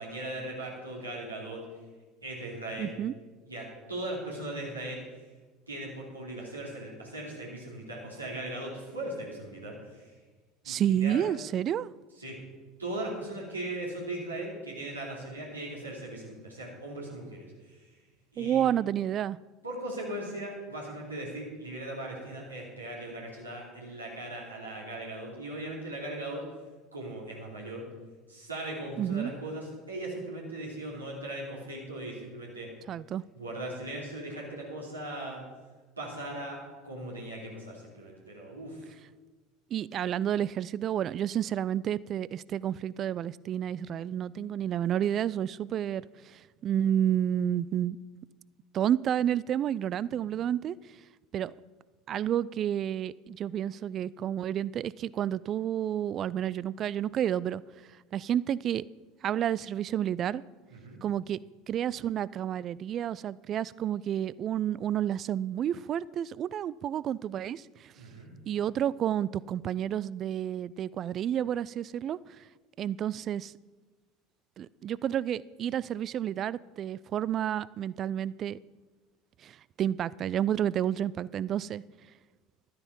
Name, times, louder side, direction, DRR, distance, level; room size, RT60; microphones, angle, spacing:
voice 1, 0.0-1.6 2.2-2.9 3.5-5.0 5.7-10.1 10.6-11.4 12.2-12.4 12.8-18.0 18.3-18.6 19.6-26.5 26.9-27.9 28.3-32.7 33.3-35.4 36.0-36.6 36.8-38.9 50.2-50.3 60.7-61.0 67.9-68.3, right 1 dB, 90° right, -4 dB, 2.9 m, -39 dB
voice 2, 2.8-3.1 10.7-11.9 18.4-19.4 29.0-29.3 32.9-33.2 39.7-48.0 48.7-50.8 51.3-51.5 52.1-57.6 58.1-58.8 59.2-60.4 61.0-61.4 61.7-67.9 68.5-72.4 72.8-73.5 74.6-78.6 79.4-81.8, right 10 dB, 40° right, 22 dB, 0.3 m, -30 dB
12.0 x 9.7 x 5.4 m, 1.3 s
figure-of-eight pair, 70°, 0 cm